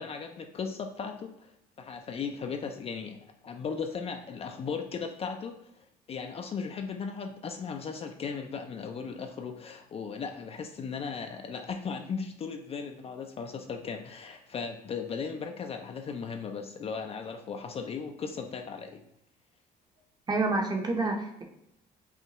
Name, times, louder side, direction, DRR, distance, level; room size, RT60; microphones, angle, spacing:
voice 1, 0.0-3.2 3.4-19.0, left 5 dB, 35° left, 5 dB, 0.4 m, -37 dB
voice 2, 20.3-21.4, right 3 dB, 25° right, 2 dB, 0.7 m, -28 dB
5.5 x 2.2 x 2.9 m, 0.78 s
cardioid pair, 110°, 17 cm